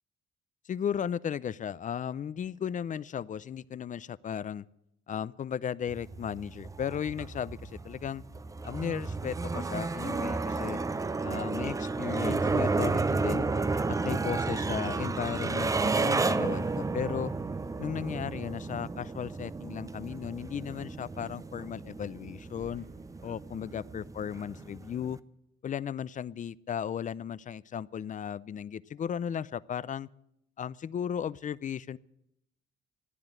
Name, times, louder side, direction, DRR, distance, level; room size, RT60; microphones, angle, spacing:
voice 1, 0.7-4.7 5.1-8.2 8.6-10.8 11.2-13.5 13.9-17.3 17.8-22.9 23.2-25.2 25.6-30.1 30.6-32.0, left 8 dB, 40° left, 20 dB, 0.5 m, -35 dB
sound 1, 5.9-25.2, right 3 dB, 15° right, 0.5 m, -32 dB
sound 2, 22.3-24.0, right 1 dB, 40° right, 2.0 m, -56 dB
14.5 x 10.0 x 9.1 m, 0.80 s
cardioid pair, 120°, 20 cm